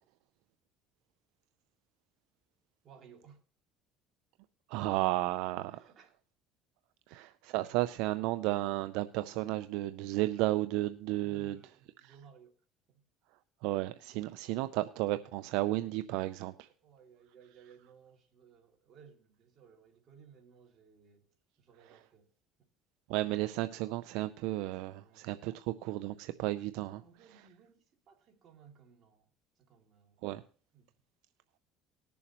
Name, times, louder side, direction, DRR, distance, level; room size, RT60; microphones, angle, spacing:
voice 1, 2.8-3.4 5.7-6.1 11.2-12.5 12.9-13.0 16.8-21.3 21.6-22.3 25.0-25.6 27.0-29.3 29.6-30.2 30.7-30.9, right 7 dB, 50° right, 2.5 m, -59 dB
voice 2, 4.7-5.9 7.1-11.6 13.6-16.7 23.1-27.0 30.2-30.4, right 17 dB, 80° right, 0.4 m, -33 dB
19.5 x 7.0 x 3.0 m
cardioid pair, 110°, 0 cm